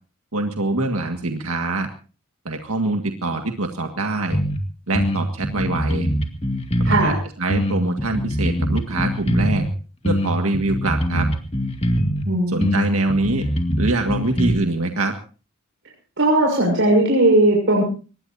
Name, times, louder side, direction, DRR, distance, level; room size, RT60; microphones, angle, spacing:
voice 1, 0.3-1.9 2.5-4.4 4.9-6.1 6.9-9.7 10.0-11.3 12.5-13.5 13.8-15.1, right 2 dB, 85° right, 4 dB, 1.9 m, -24 dB
sound 1, 4.3-4.6 4.9-7.1 7.5-9.7 10.0-12.3 12.6-14.5, equal, 30° left, 2.3 m, -22 dB
voice 2, 6.8-7.2 12.2-12.7 16.2-17.8, right 1 dB, 60° right, -1 dB, 6.5 m, -17 dB
24.0 x 20.0 x 2.8 m, 0.36 s
head